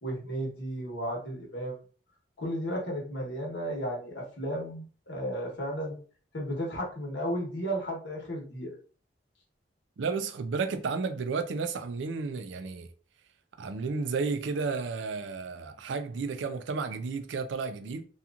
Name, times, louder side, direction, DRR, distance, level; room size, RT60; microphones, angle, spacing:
voice 1, 0.0-1.8 2.4-6.0 6.3-8.7, equal, 70° left, 1.1 m, -34 dB
voice 2, 10.0-12.9 13.6-18.0, right 4 dB, 80° right, 0.4 m, -32 dB
2.8 x 2.4 x 2.4 m
head